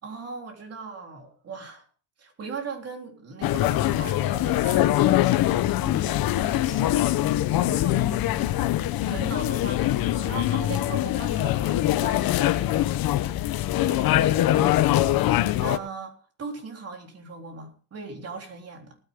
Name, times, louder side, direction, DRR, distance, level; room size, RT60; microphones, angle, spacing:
voice 1, 0.0-1.8 2.2-5.0 6.6-7.0 7.6-7.9 9.0-12.5 13.8-14.3 15.6-16.1 16.4-19.0, right 5 dB, 45° right, 2 dB, 3.8 m, -38 dB
sound 1, 3.4-15.8, left 14 dB, 75° left, 0.9 m, -23 dB
voice 2, 5.8-8.7 14.1-15.2, left 7 dB, 45° left, 7 dB, 1.6 m, -35 dB
19.0 x 9.9 x 3.7 m, 0.41 s
cardioid pair, 135°, 36 cm